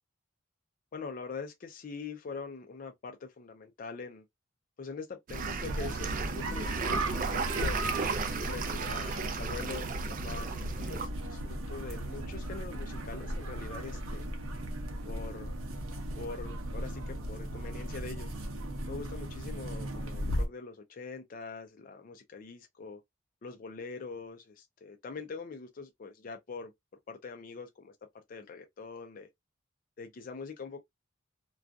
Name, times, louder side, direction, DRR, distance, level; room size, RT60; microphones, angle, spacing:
voice 1, 0.9-4.2 4.8-7.8 8.5-14.3 15.1-15.5 16.2-18.3 18.9-23.0 23.4-26.7 27.1-29.3 30.0-30.8, left 4 dB, 45° left, 0.4 m, -43 dB
sound 1, 5.3-11.1, right 4 dB, 40° right, 0.4 m, -35 dB
sound 2, 5.6-20.5, right 1 dB, 85° right, 0.7 m, -36 dB
2.6 x 2.3 x 2.2 m
head